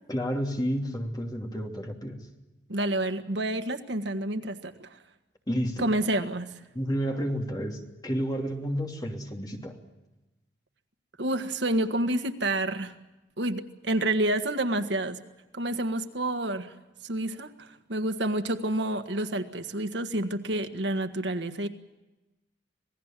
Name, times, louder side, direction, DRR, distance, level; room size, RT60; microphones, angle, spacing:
voice 1, 0.1-2.3 5.5-5.9 6.7-9.8, equal, 20° left, 2 dB, 3.0 m, -31 dB
voice 2, 2.7-4.9 5.8-6.5 11.2-12.9 13.4-15.2 15.5-16.7 17.0-21.7, right 1 dB, 70° right, 8 dB, 1.6 m, -29 dB
27.0 x 19.0 x 7.5 m, 1.1 s
head